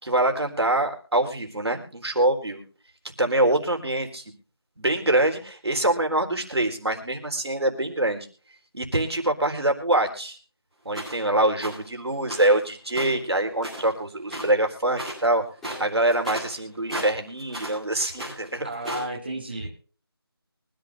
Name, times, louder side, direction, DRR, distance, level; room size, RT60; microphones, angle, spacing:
voice 1, 0.0-2.6 3.2-4.2 4.8-8.3 8.7-10.4 10.8-15.4 15.8-18.7, right 1 dB, 85° right, 4 dB, 4.0 m, -24 dB
sound 1, 10.9-11.2 11.6-11.8 12.3-12.6 12.9-14.0 14.3-14.6 14.9-15.2 15.6-17.8 18.1-19.1, right 1 dB, ahead, 3.1 m, -35 dB
voice 2, 18.6-19.7, right 1 dB, 25° right, -1 dB, 2.1 m, -32 dB
24.0 x 11.0 x 2.5 m, 0.39 s
figure-of-eight pair, 180°, 13 cm